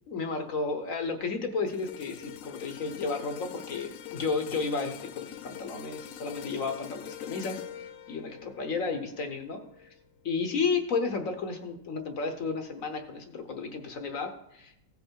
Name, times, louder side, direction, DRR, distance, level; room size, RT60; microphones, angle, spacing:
voice 1, 0.1-7.6 8.1-9.9 10.2-14.8, left 4 dB, 55° left, 6 dB, 1.2 m, -32 dB
sound 1, 1.7-10.0 10.5-10.7, left 11 dB, 70° left, 0.8 m, -44 dB
16.0 x 5.5 x 4.6 m, 0.80 s
omnidirectional pair, 1.9 m